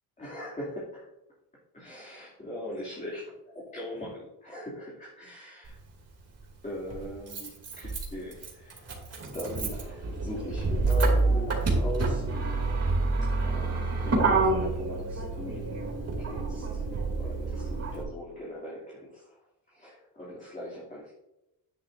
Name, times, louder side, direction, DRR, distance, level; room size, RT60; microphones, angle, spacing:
voice 1, 0.2-1.1 1.7-5.8 6.6-8.9 9.3-12.3 13.4-15.8 16.2-16.9 17.2-21.1, left 1 dB, 20° left, -6 dB, 2.6 m, -40 dB
Motor vehicle (road), 5.6-5.7 6.9-18.0, right 3 dB, 40° right, 2.7 m, -28 dB
10.5 x 10.0 x 2.6 m, 0.92 s
cardioid pair, 140°, 39 cm